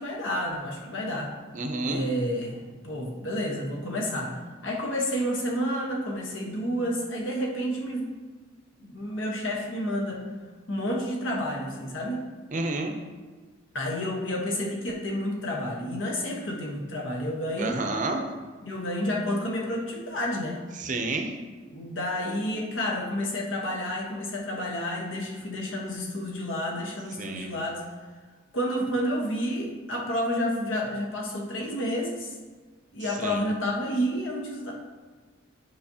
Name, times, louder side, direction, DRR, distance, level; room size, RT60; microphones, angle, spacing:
voice 1, 0.0-1.3 1.9-8.1 8.8-10.2 10.7-12.2 13.7-17.8 18.6-20.6 21.6-27.8 28.5-32.4 32.9-34.7, equal, 75° left, -1 dB, 1.2 m, -30 dB
voice 2, 1.5-2.0 12.5-12.9 17.6-18.2 20.8-21.3 27.2-27.5 33.2-33.4, right 2 dB, 40° right, 4 dB, 0.6 m, -30 dB
8.8 x 5.1 x 2.8 m, 1.4 s
head